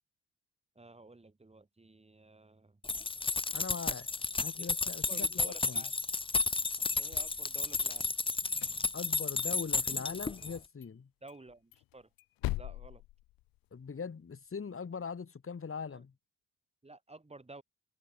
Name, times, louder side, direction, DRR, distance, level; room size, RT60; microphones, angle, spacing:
voice 1, 0.7-2.8 4.6-4.7 5.1-5.9 7.0-8.1 11.2-12.1 12.5-13.0 15.9-16.0 16.8-17.6, right 2 dB, 20° right, 6.1 m, -52 dB
sound 1, 2.8-10.6, left 4 dB, 15° left, 0.7 m, -33 dB
voice 2, 3.5-4.1 4.4-5.8 8.9-11.1 13.7-16.1, left 5 dB, 40° left, 6.5 m, -41 dB
sound 2, 7.0-8.2 8.5-9.6 9.9-10.0 10.4-10.5 10.8-10.9 11.3-13.9, left 18 dB, 85° left, 4.8 m, -42 dB
supercardioid pair, 70°, 34 cm